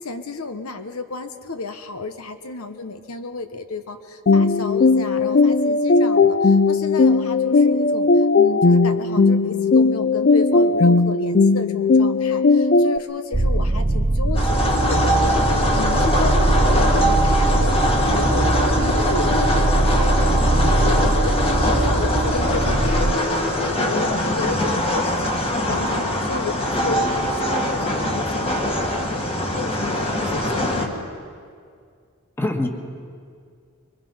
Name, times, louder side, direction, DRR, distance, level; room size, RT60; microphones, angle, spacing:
voice 1, 0.0-31.1, left 3 dB, 80° left, 8 dB, 1.1 m, -32 dB
sound 1, 4.3-13.0, left 3 dB, 45° left, 0.5 m, -17 dB
sound 2, 13.3-23.1, right 2 dB, 20° right, 0.4 m, -21 dB
sound 3, 14.3-30.9, equal, 25° left, 1.8 m, -22 dB
voice 2, 32.4-32.7, left 2 dB, 10° left, 4 dB, 1.5 m, -25 dB
24.5 x 23.0 x 5.5 m, 2.2 s
head